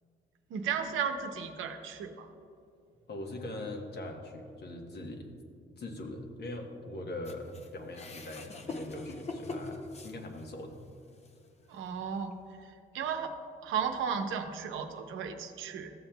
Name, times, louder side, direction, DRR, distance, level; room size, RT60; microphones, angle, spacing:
voice 1, 0.5-2.3 11.7-12.3 12.6-13.3 13.6-15.9, right 7 dB, 85° right, 6 dB, 0.7 m, -34 dB
voice 2, 3.1-5.3 5.8-10.8, left 1 dB, 55° left, 3 dB, 1.2 m, -41 dB
sound 1, 7.2-10.7 11.2-11.3 12.3-12.4, left 3 dB, 35° left, 0.7 m, -42 dB
13.5 x 7.2 x 2.3 m, 2.4 s
cardioid pair, 90°, 20 cm